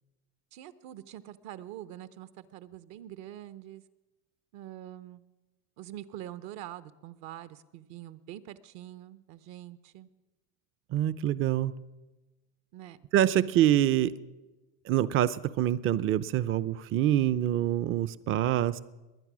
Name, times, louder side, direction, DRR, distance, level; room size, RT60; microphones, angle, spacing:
voice 1, 0.5-3.8 4.5-5.2 5.8-10.1 12.7-13.0 13.4-13.6, right 13 dB, 65° right, 14 dB, 0.9 m, -45 dB
voice 2, 10.9-11.7 13.1-14.1 14.9-18.8, right 12 dB, 40° right, 17 dB, 0.6 m, -25 dB
21.5 x 9.8 x 6.1 m, 1.1 s
supercardioid pair, 120°, 31 cm